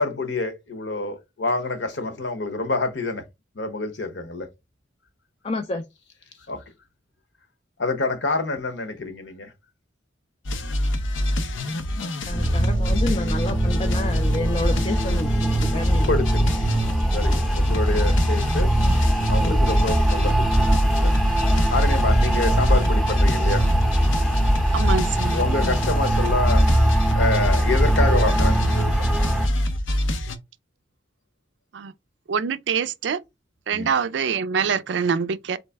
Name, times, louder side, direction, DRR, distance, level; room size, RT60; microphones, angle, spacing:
voice 1, 0.0-3.2 3.5-4.5 6.5-6.6 7.8-9.5 16.1-16.4 17.1-18.7 19.3-20.7 20.9-21.2 21.7-23.7 25.3-26.7 27.1-29.1 33.7-33.9, left 2 dB, 65° left, 1.0 m, -27 dB
voice 2, 5.4-5.9 12.0-16.2 17.3-17.4 19.4-19.6, left 2 dB, 30° left, 0.4 m, -30 dB
sound 1, 10.5-30.4, left 1 dB, 85° left, 0.7 m, -26 dB
sound 2, 12.3-29.5, right 1 dB, ahead, 0.7 m, -21 dB
voice 3, 24.7-25.3 31.7-31.9 32.3-33.2 33.7-35.6, right 6 dB, 65° right, 0.4 m, -24 dB
4.0 x 3.2 x 3.4 m
head